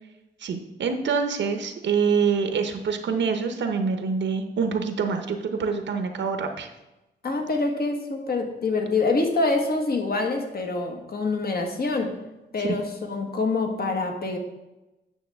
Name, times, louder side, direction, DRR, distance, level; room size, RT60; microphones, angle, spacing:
voice 1, 0.4-6.7 12.6-12.7, right 5 dB, 70° right, 6 dB, 0.7 m, -26 dB
voice 2, 7.2-12.1 12.5-14.4, left 3 dB, 50° left, 3 dB, 1.4 m, -26 dB
9.1 x 5.9 x 3.5 m, 0.99 s
cardioid pair, 80°, 20 cm